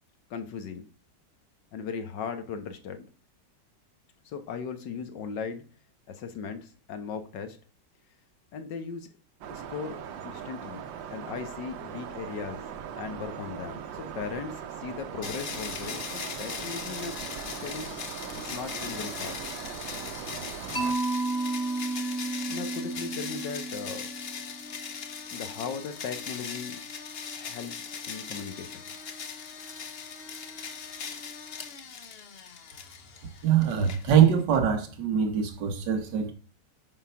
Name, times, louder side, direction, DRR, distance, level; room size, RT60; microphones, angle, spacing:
voice 1, 0.3-0.9 1.7-3.0 4.3-5.6 6.1-7.6 8.5-9.1 9.5-10.8 11.1-12.7 13.0-17.9 18.4-19.4 22.5-24.1 25.3-26.8 27.3-28.8, left 6 dB, 75° left, 1.8 m, -38 dB
sound 1, 9.4-20.9, right 8 dB, 85° right, 1.6 m, -40 dB
sound 2, 15.2-34.6, left 6 dB, 45° left, 0.8 m, -39 dB
Mallet percussion, 20.7-24.8, right 2 dB, 10° right, 1.5 m, -32 dB
voice 2, 33.4-36.3, right 8 dB, 70° right, 1.9 m, -23 dB
9.6 x 4.5 x 5.7 m
omnidirectional pair, 2.0 m